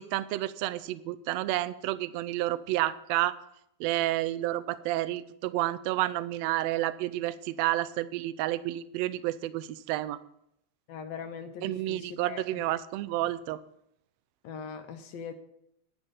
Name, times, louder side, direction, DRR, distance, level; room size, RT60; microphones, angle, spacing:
voice 1, 0.0-3.3 3.8-10.2 11.6-13.6, right 15 dB, 80° right, 16 dB, 1.6 m, -30 dB
voice 2, 10.9-12.6 14.4-15.3, left 6 dB, 70° left, 8 dB, 1.8 m, -41 dB
10.5 x 9.9 x 5.1 m, 0.77 s
omnidirectional pair, 3.3 m